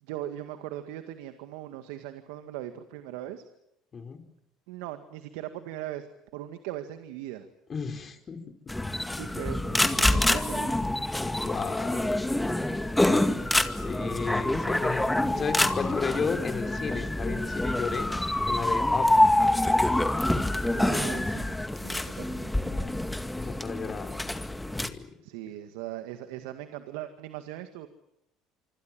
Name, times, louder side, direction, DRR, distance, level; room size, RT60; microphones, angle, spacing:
voice 1, 0.0-3.4 4.7-6.1 6.3-7.5 9.2-10.8 20.8-23.1 25.2-27.9, right 13 dB, 80° right, 8 dB, 1.9 m, -39 dB
voice 2, 7.7-8.4 11.4-12.2 13.3-13.5 13.8-15.1 15.3-18.1 18.4-19.1 23.3-24.2 24.8-25.1, left 5 dB, 35° left, 7 dB, 4.7 m, -33 dB
sound 1, 8.7-24.9, left 1 dB, 10° left, 2.1 m, -26 dB
26.0 x 25.5 x 7.7 m, 0.83 s
hypercardioid pair, 80°, 0 cm